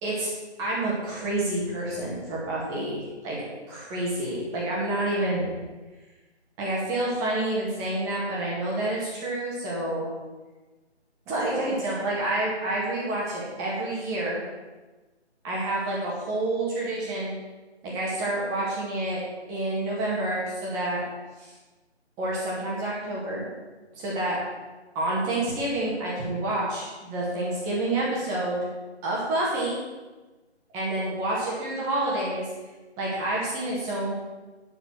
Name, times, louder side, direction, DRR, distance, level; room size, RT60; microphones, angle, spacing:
voice 1, 0.6-3.4 3.7-5.5 6.6-10.1 11.3-14.4 15.4-17.3 17.8-19.2 19.5-21.0 21.4-21.5 22.2-23.5 23.9-24.4 25.0-28.7 29.0-29.7 30.7-32.5 33.0-34.1, right 1 dB, 10° right, -5 dB, 1.8 m, -28 dB
9.8 x 7.6 x 6.1 m, 1.2 s
figure-of-eight pair, 155°, 34 cm